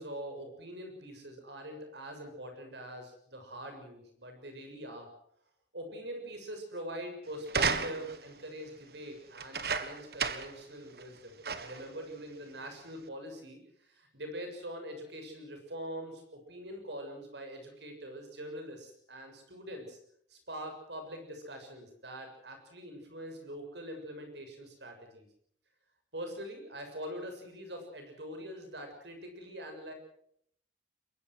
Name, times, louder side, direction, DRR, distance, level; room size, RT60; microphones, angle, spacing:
voice 1, 0.0-5.1 5.7-20.0 20.3-25.3 26.1-29.9, equal, 75° right, 5 dB, 7.1 m, -43 dB
sound 1, 7.5-8.3 9.3-10.6 11.0-11.1 11.4-11.9 12.6-12.7, right 5 dB, 60° right, 1.5 m, -33 dB
23.0 x 22.5 x 6.4 m, 0.69 s
head